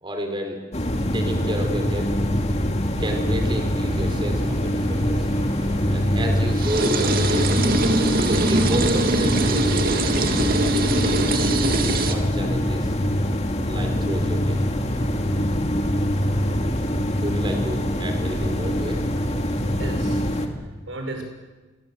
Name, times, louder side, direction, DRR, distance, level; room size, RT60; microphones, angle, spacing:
voice 1, 0.0-0.6 1.1-2.1 3.0-5.3 5.9-7.5 8.1-11.4 12.0-12.9 13.7-14.6 17.2-19.0, right 1 dB, 25° right, 3 dB, 4.6 m, -31 dB
sound 1, 0.7-20.5, equal, 35° left, 2.4 m, -24 dB
sound 2, 3.0-12.2, right 2 dB, 50° right, 2.3 m, -24 dB
voice 2, 5.7-6.2 19.8-21.2, right 2 dB, 90° right, 4 dB, 6.5 m, -36 dB
28.0 x 23.5 x 8.0 m, 1.2 s
head